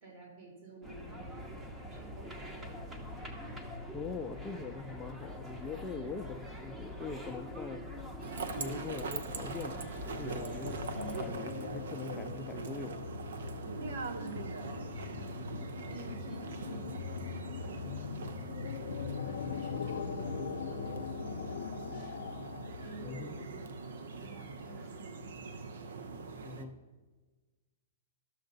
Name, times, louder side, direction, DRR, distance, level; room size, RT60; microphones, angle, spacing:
voice 1, 0.0-2.9 10.8-11.4 14.1-15.4 15.9-17.3 17.6-18.4 19.2-22.4 22.8-23.7 24.2-25.5, right 2 dB, 40° right, -2 dB, 3.1 m, -51 dB
sound 1, 0.8-11.3, left 1 dB, 10° right, 0.9 m, -44 dB
voice 2, 3.9-7.8 8.6-10.8 11.2-13.1 23.0-23.4 26.4-26.8, left 4 dB, 15° left, 6 dB, 0.4 m, -42 dB
sound 2, 8.2-26.7, right 4 dB, 80° right, 0.8 m, -42 dB
sound 3, 9.5-23.6, left 7 dB, 80° left, 0.4 m, -42 dB
12.5 x 6.6 x 3.9 m, 1.3 s
hypercardioid pair, 155°, 0 cm